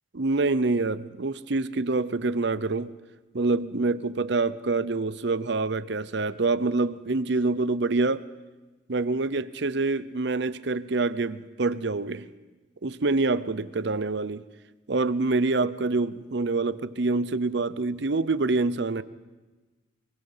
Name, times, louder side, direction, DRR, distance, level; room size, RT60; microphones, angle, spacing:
voice 1, 0.1-2.9 3.3-8.3 8.9-12.3 12.8-14.4 14.9-19.0, right 3 dB, 60° right, 16 dB, 0.7 m, -26 dB
24.5 x 23.0 x 5.7 m, 1.2 s
head